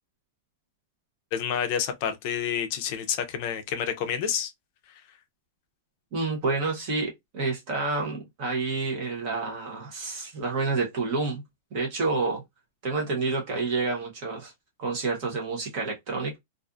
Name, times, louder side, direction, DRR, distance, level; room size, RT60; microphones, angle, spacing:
voice 1, 1.3-4.5, left 8 dB, 40° left, 0.4 m, -29 dB
voice 2, 6.1-11.4 11.7-12.4 12.8-14.5 14.8-16.4, right 3 dB, 35° right, 0.7 m, -29 dB
2.5 x 2.4 x 2.3 m
supercardioid pair, 175°, 0 cm